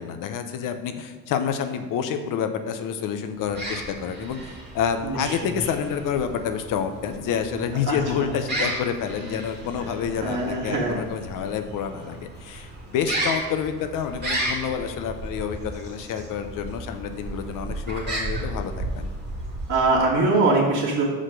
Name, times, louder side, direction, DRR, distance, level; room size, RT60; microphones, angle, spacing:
voice 1, 0.0-4.4 4.7-19.1, left 7 dB, 60° left, 7 dB, 0.8 m, -28 dB
sound 1, 3.4-20.1, right 1 dB, 30° right, 2.2 m, -34 dB
voice 2, 10.2-11.0 19.7-21.0, right 3 dB, 55° right, -4 dB, 2.6 m, -22 dB
5.8 x 5.0 x 6.5 m, 1.4 s
supercardioid pair, 90°, 36 cm